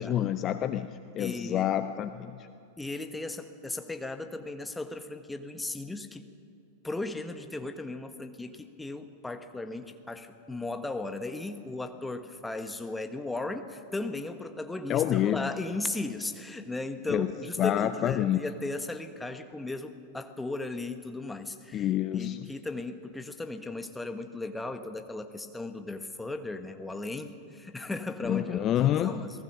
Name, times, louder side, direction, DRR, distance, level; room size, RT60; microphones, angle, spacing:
voice 1, 0.0-2.5 14.9-15.5 17.1-17.3 17.6-18.4 21.7-22.5 28.2-29.2, left 11 dB, 30° left, 11 dB, 0.7 m, -28 dB
voice 2, 1.2-1.7 2.8-6.3 6.8-21.9 22.1-29.4, left 2 dB, 5° left, 8 dB, 1.4 m, -36 dB
27.5 x 19.5 x 6.2 m, 2.6 s
figure-of-eight pair, 90°, 0 cm